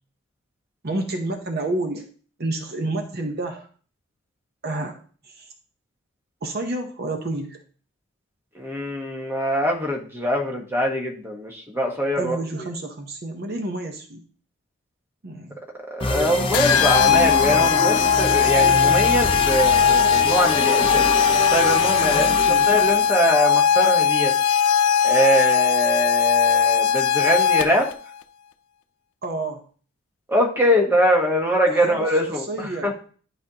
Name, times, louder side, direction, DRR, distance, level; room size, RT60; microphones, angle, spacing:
voice 1, 0.8-2.1 2.4-3.7 4.6-5.0 5.2-5.5 6.4-7.6 12.2-14.3 15.2-15.6 22.0-22.7 29.2-29.6 31.7-32.9, right 2 dB, 45° right, 4 dB, 0.7 m, -30 dB
voice 2, 8.5-12.4 15.9-21.1 21.5-22.3 22.7-24.3 25.0-27.9 30.3-32.9, equal, 10° right, 1 dB, 1.1 m, -23 dB
sound 1, 16.0-23.1, left 2 dB, 25° left, 0.6 m, -26 dB
sound 2, 16.5-27.9, left 7 dB, 85° left, 0.5 m, -19 dB
11.0 x 5.1 x 2.8 m, 0.43 s
head